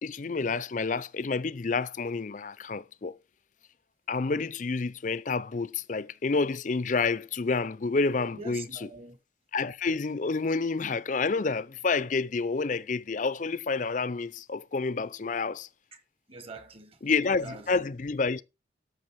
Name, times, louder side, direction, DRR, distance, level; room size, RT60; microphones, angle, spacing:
voice 1, 0.0-3.2 4.1-8.7 9.5-15.7 17.0-18.4, left 4 dB, 45° left, 0.5 m, -29 dB
voice 2, 8.3-9.2 15.9-16.0 16.3-17.0 17.4-17.9, right 3 dB, 30° right, 1.2 m, -44 dB
13.0 x 6.3 x 4.7 m
head